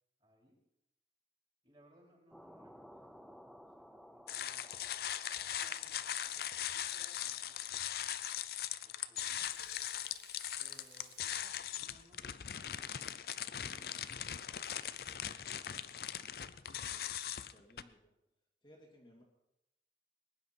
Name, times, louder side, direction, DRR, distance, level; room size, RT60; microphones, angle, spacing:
voice 1, 0.2-0.6 1.6-3.4 3.8-4.7 5.4-8.3 8.8-9.6 10.6-13.1 13.6-14.4, equal, 30° right, -2 dB, 4.8 m, -67 dB
sound 1, 2.3-10.3, equal, ahead, 0.4 m, -59 dB
sound 2, 4.3-17.8, left 10 dB, 55° left, 0.5 m, -40 dB
Water tap faucet / Sink (filling or washing), 9.3-14.7, right 6 dB, 75° right, 2.0 m, -64 dB
voice 2, 16.7-18.1 18.6-19.2, equal, 25° left, -2 dB, 2.3 m, -62 dB
21.0 x 10.5 x 4.3 m, 0.87 s
head